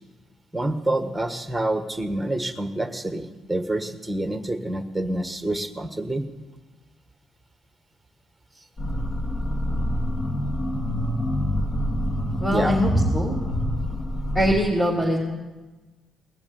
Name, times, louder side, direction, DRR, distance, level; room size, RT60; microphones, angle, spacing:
voice 1, 0.5-6.2 12.5-12.8, right 1 dB, 5° right, 8 dB, 1.3 m, -27 dB
sound 1, 8.8-14.6, equal, 50° left, 2.1 m, -26 dB
voice 2, 12.4-13.4 14.3-15.2, equal, 20° left, -5 dB, 3.3 m, -22 dB
19.0 x 7.1 x 8.2 m, 1.2 s
cardioid pair, 90°, 0 cm